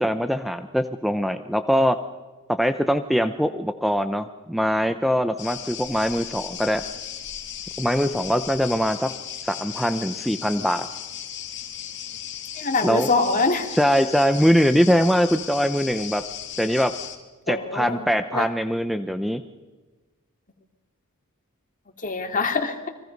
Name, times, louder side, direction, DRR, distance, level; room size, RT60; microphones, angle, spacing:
voice 1, 0.0-2.0 2.6-6.8 7.8-9.1 9.4-10.9 12.8-13.1 13.7-16.2 16.6-16.9 17.5-19.4, equal, ahead, 9 dB, 0.7 m, -22 dB
sound 1, 5.4-17.2, left 9 dB, 55° left, 2.5 m, -36 dB
voice 2, 12.6-13.7 17.5-18.1 18.3-18.5 22.0-22.8, left 3 dB, 40° left, 5 dB, 2.6 m, -24 dB
29.5 x 23.0 x 5.4 m, 1.3 s
head